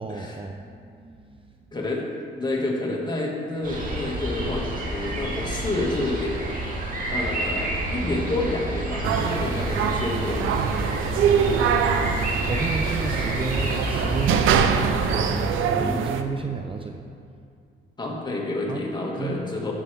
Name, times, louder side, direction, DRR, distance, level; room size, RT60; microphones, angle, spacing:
voice 1, 0.0-1.7 11.3-11.9 12.4-17.0 18.7-18.9 19.2-19.4, right 4 dB, 25° right, 4 dB, 0.5 m, -32 dB
voice 2, 1.7-2.0 2.4-6.3 7.1-10.5 15.7-16.1 18.0-19.7, left 2 dB, 20° left, -2 dB, 2.0 m, -29 dB
sound 1, 3.6-15.5, right 1 dB, 45° right, 2.1 m, -29 dB
sound 2, 9.0-16.2, right 7 dB, 85° right, 0.6 m, -24 dB
12.0 x 7.3 x 3.5 m, 2.3 s
cardioid pair, 90°, 20 cm